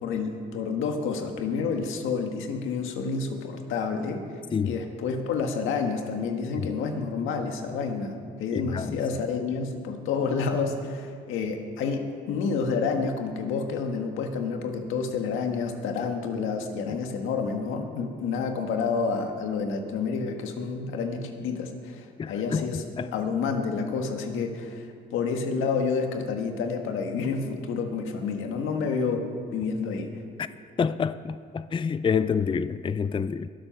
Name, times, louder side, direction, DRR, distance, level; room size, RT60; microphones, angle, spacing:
voice 1, 0.0-4.2 4.6-22.8 23.1-24.8 25.1-30.1, left 5 dB, 90° left, 1.6 m, -29 dB
voice 2, 8.5-9.0 22.2-23.1 30.4-30.5 30.8-33.5, left 6 dB, 25° left, 0.4 m, -28 dB
22.0 x 7.8 x 5.9 m
cardioid pair, 90°, 20 cm